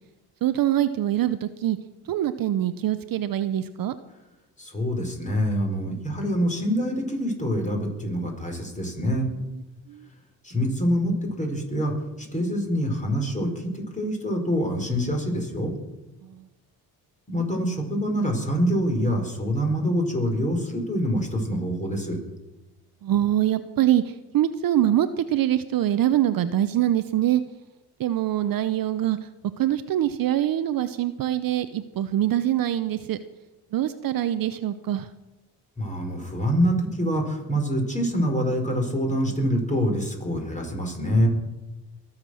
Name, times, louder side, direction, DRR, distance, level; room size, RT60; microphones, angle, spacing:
voice 1, 0.4-1.8 2.1-4.0 9.9-10.0 16.2-16.4 23.0-27.4 28.0-29.2 29.6-33.2 33.7-35.1, right 12 dB, 50° right, 12 dB, 0.7 m, -24 dB
voice 2, 4.6-9.3 10.4-11.9 12.2-15.7 17.3-22.2 35.8-41.3, equal, 15° left, 2 dB, 4.5 m, -25 dB
22.0 x 7.4 x 6.3 m, 1.0 s
supercardioid pair, 80°, 43 cm